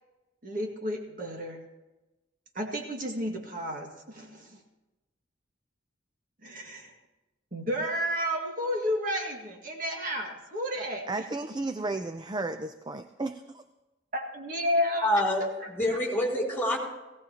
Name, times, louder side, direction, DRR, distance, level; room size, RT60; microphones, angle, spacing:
voice 1, 0.4-1.6 2.5-4.6 6.4-6.9 7.5-11.1 14.1-15.1 15.6-16.0, equal, 45° right, 1 dB, 1.9 m, -32 dB
voice 2, 11.1-13.6, right 2 dB, 25° right, 9 dB, 0.4 m, -33 dB
voice 3, 15.0-16.8, left 1 dB, 10° left, -3 dB, 3.4 m, -27 dB
18.5 x 16.5 x 2.9 m, 1.1 s
head